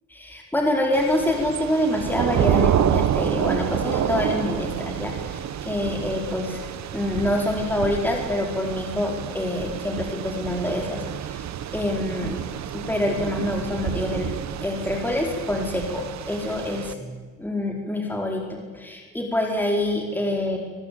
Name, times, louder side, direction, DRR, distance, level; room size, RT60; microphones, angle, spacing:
voice 1, 0.1-6.6 6.9-11.4 11.7-12.4 12.7-14.3 14.6-20.6, left 1 dB, 5° left, 0 dB, 4.8 m, -26 dB
Thunder / Rain, 0.9-16.9, right 10 dB, 65° right, 1.4 m, -28 dB
26.5 x 20.5 x 8.8 m, 1.4 s
cardioid pair, 90°, 30 cm